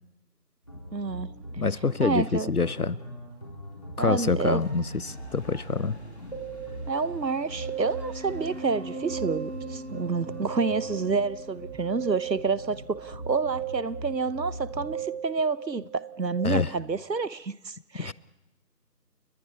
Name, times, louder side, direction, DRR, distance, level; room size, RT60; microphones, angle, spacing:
sound 1, 0.6-14.9, right 1 dB, 20° left, 3.4 m, -41 dB
voice 1, 0.9-1.3 2.0-2.5 4.0-4.6 6.9-18.1, right 4 dB, 85° right, 18 dB, 1.0 m, -29 dB
voice 2, 1.6-3.0 4.0-6.0 16.4-16.7 18.0-18.1, left 4 dB, 65° left, 21 dB, 0.8 m, -26 dB
sound 2, 4.5-11.8, left 1 dB, 40° left, 2.5 m, -56 dB
sound 3, 6.3-16.4, right 8 dB, 65° right, 5.9 m, -37 dB
30.0 x 22.0 x 4.2 m, 0.95 s
figure-of-eight pair, 175°, 49 cm